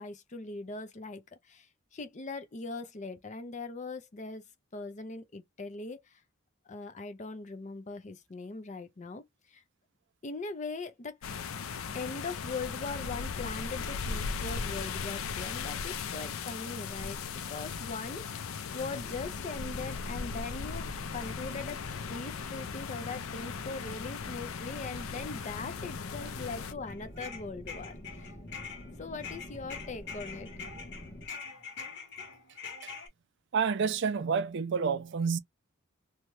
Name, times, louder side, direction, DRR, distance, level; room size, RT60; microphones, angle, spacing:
voice 1, 0.0-1.7 1.9-4.4 4.7-6.2 6.7-9.6 10.2-11.2 11.9-17.2 17.5-21.8 22.1-27.9 29.0-30.5, left 3 dB, 35° left, 0.5 m, -40 dB
sound 1, 11.2-26.7, left 5 dB, 85° left, 0.4 m, -38 dB
sound 2, 18.7-31.3, left 1 dB, 20° left, 1.0 m, -47 dB
sound 3, 26.9-28.9 29.2-33.1, left 5 dB, 55° left, 1.2 m, -44 dB
voice 2, 33.5-35.4, right 6 dB, 60° right, 0.4 m, -29 dB
2.8 x 2.2 x 3.1 m
head